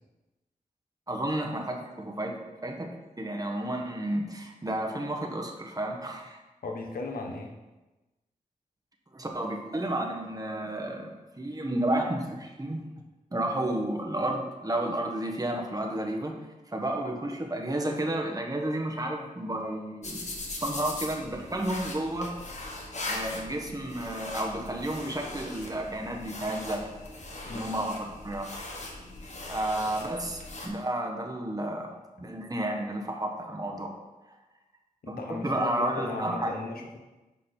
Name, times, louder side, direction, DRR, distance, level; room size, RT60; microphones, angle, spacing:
voice 1, 1.1-6.4 9.1-12.9 13.3-16.3 16.7-20.2 20.5-22.3 23.1-26.9 27.5-28.5 29.5-34.0 35.1-36.5, right 1 dB, 25° right, 1 dB, 1.3 m, -32 dB
voice 2, 6.6-7.5 27.5-27.7 35.0-37.0, left 3 dB, 85° left, 2 dB, 1.1 m, -36 dB
sound 1, 20.0-30.7, left 2 dB, 50° left, 1.5 m, -40 dB
7.1 x 5.3 x 4.4 m, 1.1 s
cardioid pair, 60°, 15 cm